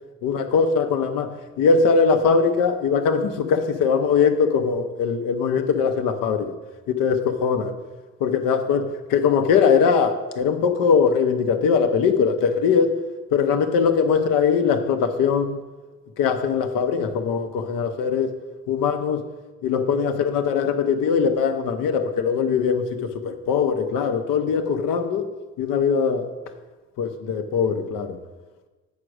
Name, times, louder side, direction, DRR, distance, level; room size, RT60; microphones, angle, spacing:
voice 1, 0.2-6.5 6.9-7.7 8.2-13.0 13.3-15.6 16.2-18.3 18.7-19.3 19.6-25.3 25.6-26.3 27.0-28.2, left 6 dB, 70° left, 6 dB, 1.0 m, -21 dB
8.3 x 4.9 x 6.4 m, 1.2 s
hypercardioid pair, 55°, 33 cm